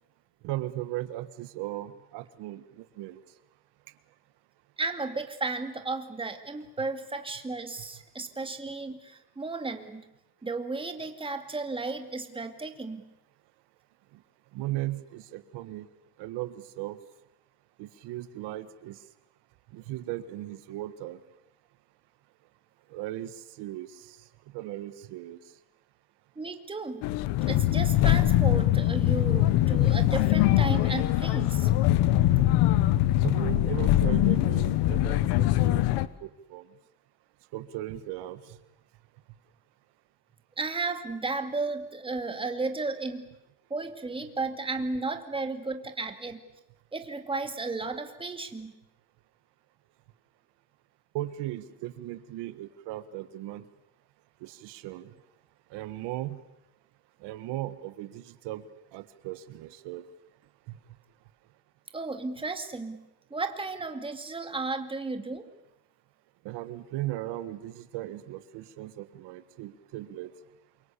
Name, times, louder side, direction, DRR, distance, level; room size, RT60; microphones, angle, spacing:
voice 1, 0.4-3.2 14.5-15.9 16.2-17.0 17.8-19.0 19.7-21.2 22.9-24.2 24.5-25.4 33.2-35.9 36.2-36.7 37.5-38.6 51.1-53.7 54.4-55.1 55.7-56.4 57.2-58.6 58.9-60.0 60.7-60.8 66.5-70.3, right 15 dB, 85° right, 12 dB, 1.7 m, -37 dB
voice 2, 4.8-10.1 10.4-13.0 26.4-27.0 27.5-31.7 40.6-43.3 43.7-46.4 46.9-48.7 61.9-63.0 63.3-65.5, right 3 dB, 15° right, 6 dB, 2.3 m, -34 dB
sound 1, 27.0-36.1, left 14 dB, 85° left, 1.2 m, -23 dB
28.0 x 24.0 x 8.5 m, 0.91 s
cardioid pair, 145°, 40 cm